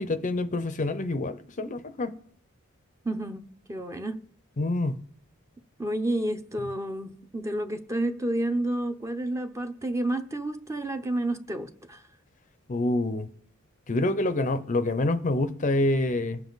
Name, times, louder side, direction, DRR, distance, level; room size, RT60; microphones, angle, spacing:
voice 1, 0.0-2.1 4.6-5.0 12.7-13.3 13.9-16.4, left 2 dB, 35° left, 0.6 m, -27 dB
voice 2, 3.0-4.2 5.8-12.0, right 1 dB, 15° right, 0.7 m, -30 dB
21.0 x 7.1 x 4.0 m
head